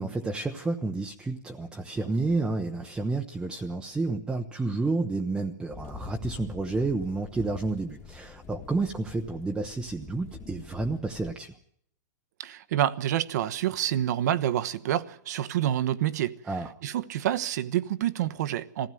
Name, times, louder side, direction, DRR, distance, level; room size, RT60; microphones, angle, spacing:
voice 1, 0.0-11.5 16.5-16.7, right 3 dB, 10° right, 0.9 m, -30 dB
sound 1, 5.7-11.3, left 4 dB, 20° left, 1.7 m, -45 dB
voice 2, 12.4-18.9, right 11 dB, 65° right, 1.1 m, -28 dB
21.5 x 15.5 x 9.2 m
supercardioid pair, 155°, 10 cm